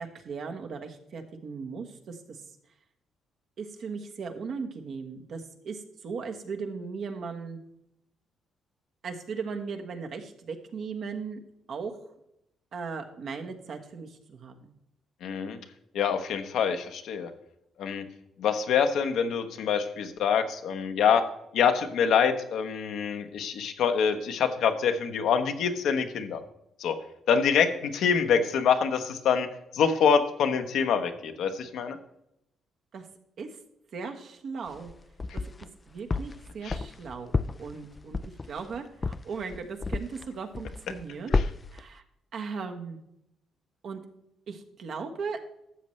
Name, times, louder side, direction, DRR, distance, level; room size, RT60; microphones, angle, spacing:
voice 1, 0.0-2.4 3.6-7.6 9.0-11.4 11.7-12.0 12.7-14.7 32.9-33.1 33.4-33.5 33.9-34.9 35.3-35.5 35.9-37.3 37.6-38.2 38.5-41.5 41.7-42.0 42.3-43.0 43.8-44.0 44.5-45.4, right 5 dB, 60° right, 4 dB, 1.3 m, -37 dB
voice 2, 15.2-15.6 15.9-17.3 17.8-18.0 18.4-21.2 21.5-26.4 26.8-27.0 27.3-29.5 29.7-32.0 36.6-36.7, left 7 dB, 75° left, 7 dB, 1.0 m, -25 dB
sound 1, 34.7-35.7 36.1-40.3 40.5-41.0 41.3-41.8, left 3 dB, 30° left, 0.3 m, -30 dB
12.5 x 7.4 x 3.2 m, 0.80 s
cardioid pair, 90°, 0 cm